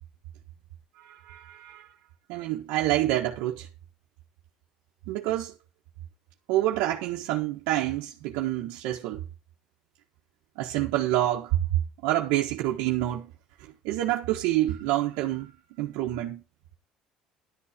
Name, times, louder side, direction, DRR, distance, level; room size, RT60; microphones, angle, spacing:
voice 1, 1.0-1.9 2.3-3.7 5.1-5.5 6.5-9.2 10.6-11.6 12.0-13.3 13.8-15.5 15.8-16.4, right 14 dB, 85° right, 1.5 m, -27 dB
12.0 x 7.1 x 5.2 m
cardioid pair, 125°, 2 cm